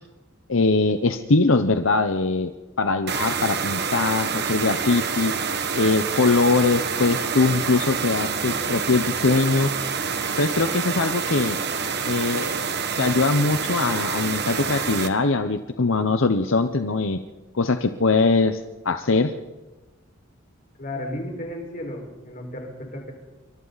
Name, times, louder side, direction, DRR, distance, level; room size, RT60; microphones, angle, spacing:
voice 1, 0.5-2.5 2.8-5.5 5.7-9.7 10.4-11.6 12.1-12.6 13.0-17.2 17.5-19.3, left 3 dB, 75° left, 8 dB, 0.9 m, -22 dB
sound 1, 3.1-15.1, right 6 dB, 55° right, 1.6 m, -27 dB
voice 2, 20.8-23.1, left 1 dB, 40° left, 1 dB, 5.1 m, -34 dB
27.0 x 24.5 x 4.1 m, 1.1 s
head